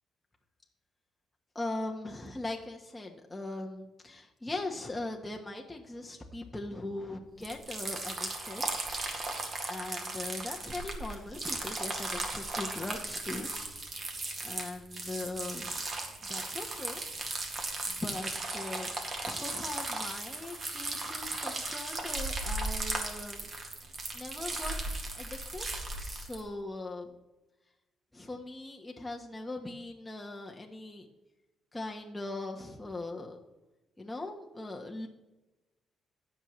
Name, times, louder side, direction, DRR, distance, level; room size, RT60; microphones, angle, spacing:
voice 1, 1.5-8.6 9.7-13.5 14.4-15.7 16.3-17.0 17.9-19.0 19.2-23.5 24.1-25.7 26.0-27.1 28.1-31.1 31.7-33.4 34.0-35.1, left 2 dB, 15° left, 1 dB, 1.2 m, -40 dB
sound 1, 7.4-26.4, right 2 dB, 45° right, 2.1 m, -36 dB
16.0 x 6.4 x 3.2 m, 1.0 s
cardioid pair, 90°, 0 cm